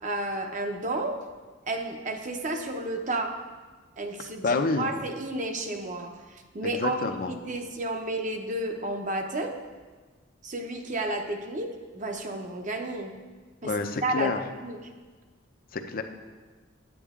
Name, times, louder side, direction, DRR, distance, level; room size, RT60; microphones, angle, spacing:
voice 1, 0.0-1.2 1.7-3.3 4.0-9.6 10.4-11.7 11.9-13.1 13.6-13.7 14.0-14.3 14.6-14.8, right 2 dB, 40° right, 4 dB, 0.8 m, -31 dB
voice 2, 4.4-4.9 6.6-7.3 13.6-14.4 15.7-16.0, left 3 dB, 45° left, 7 dB, 0.6 m, -28 dB
8.9 x 8.5 x 3.6 m, 1.4 s
head